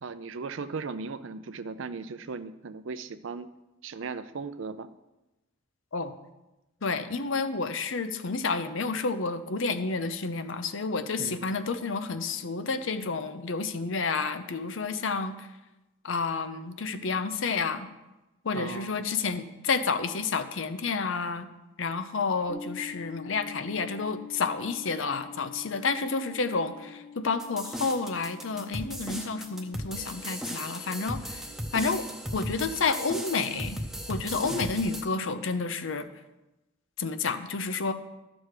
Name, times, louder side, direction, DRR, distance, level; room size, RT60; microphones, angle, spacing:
voice 1, 0.0-3.5 3.8-4.9 11.2-11.5 18.5-19.0 34.5-34.7, right 4 dB, 75° right, 13 dB, 0.5 m, -37 dB
voice 2, 6.8-15.5 16.0-17.9 18.4-21.5 21.8-31.4 31.7-32.1 32.3-33.8 34.1-36.1 37.0-37.9, left 4 dB, 75° left, 10 dB, 0.7 m, -30 dB
sound 1, 22.5-31.5, left 4 dB, 25° left, 1.2 m, -46 dB
sound 2, 27.4-35.0, equal, ahead, 0.8 m, -36 dB
12.5 x 6.3 x 4.8 m, 1.0 s
head